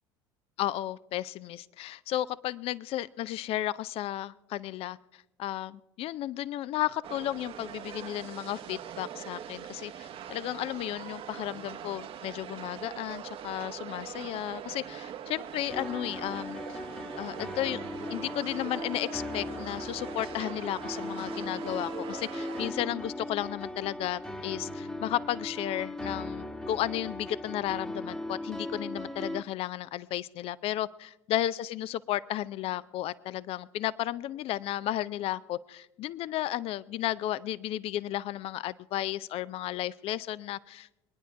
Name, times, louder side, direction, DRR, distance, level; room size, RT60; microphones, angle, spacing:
voice 1, 0.6-16.8 17.2-17.8 18.1-40.9, left 13 dB, 45° left, 18 dB, 0.5 m, -34 dB
sound 1, 7.0-22.7, right 9 dB, 45° right, 0.9 m, -42 dB
sound 2, 15.7-29.4, left 1 dB, 5° left, 1.1 m, -38 dB
23.0 x 10.0 x 4.6 m, 0.93 s
hypercardioid pair, 70°, 13 cm